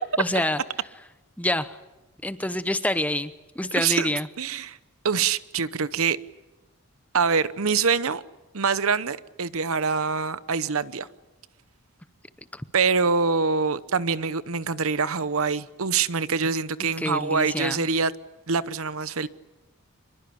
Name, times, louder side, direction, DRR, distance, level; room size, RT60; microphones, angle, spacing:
voice 1, 0.2-0.6 1.4-1.8 2.2-3.3 3.6-4.3 12.5-12.6 17.0-17.8, left 1 dB, 5° left, 0.8 m, -26 dB
voice 2, 3.8-4.1 4.4-4.8 5.0-6.2 7.1-8.2 8.5-11.1 12.7-18.1 18.5-19.3, right 5 dB, 70° right, 0.9 m, -25 dB
25.5 x 22.0 x 8.6 m
head